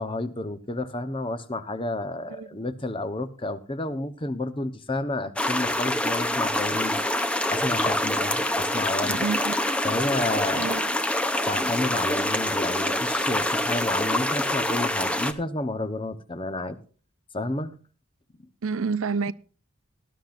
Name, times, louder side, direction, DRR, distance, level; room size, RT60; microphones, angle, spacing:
voice 1, 0.0-7.0 7.5-9.3 9.8-10.8 11.5-16.8 17.3-17.8, left 2 dB, 25° left, 0.9 m, -30 dB
sound 1, 5.4-15.3, left 1 dB, 5° left, 0.7 m, -26 dB
voice 2, 9.1-9.5 10.5-10.8 18.6-19.3, right 5 dB, 80° right, 0.6 m, -28 dB
19.0 x 12.0 x 2.6 m
head